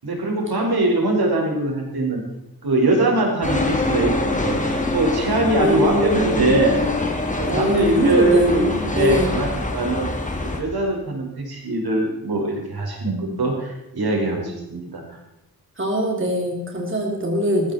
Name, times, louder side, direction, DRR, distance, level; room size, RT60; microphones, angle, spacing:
voice 1, 0.0-2.2 2.6-4.6 4.9-6.8 7.4-10.1 10.6-15.0, right 2 dB, 85° right, -1 dB, 5.3 m, -22 dB
sound 1, 3.4-10.6, left 2 dB, 20° left, 2.5 m, -25 dB
voice 2, 5.6-6.6 7.5-9.4 15.8-17.7, equal, 35° right, 0 dB, 3.3 m, -22 dB
20.0 x 15.5 x 4.4 m, 0.89 s
wide cardioid pair, 110°, 37 cm